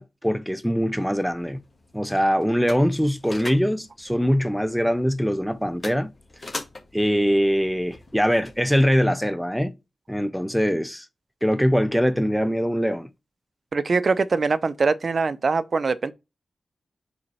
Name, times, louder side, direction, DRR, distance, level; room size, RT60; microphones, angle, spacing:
voice 1, 0.0-1.6 1.9-6.1 6.9-9.7 10.1-11.1 11.4-13.1, equal, ahead, 0.6 m, -22 dB
sound 1, 1.0-9.0, left 2 dB, 35° left, 1.9 m, -42 dB
voice 2, 13.7-16.1, right 4 dB, 50° right, 0.6 m, -22 dB
5.2 x 4.1 x 4.6 m
wide cardioid pair, 145°, 0 cm